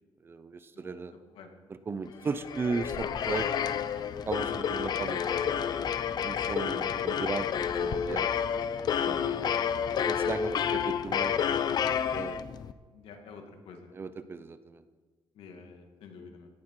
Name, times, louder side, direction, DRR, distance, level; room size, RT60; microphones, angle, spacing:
voice 1, 0.2-1.1 1.7-3.7 4.3-5.8 6.2-8.3 8.9-9.6 10.1-11.4 12.1-12.5 13.9-14.8, right 4 dB, 25° right, 12 dB, 0.6 m, -36 dB
sound 1, 2.3-12.7, left 8 dB, 50° left, 0.6 m, -30 dB
voice 2, 12.9-13.9 15.4-16.5, left 5 dB, 90° left, 4 dB, 2.1 m, -48 dB
17.5 x 11.5 x 4.8 m, 1.4 s
cardioid pair, 175°, 9 cm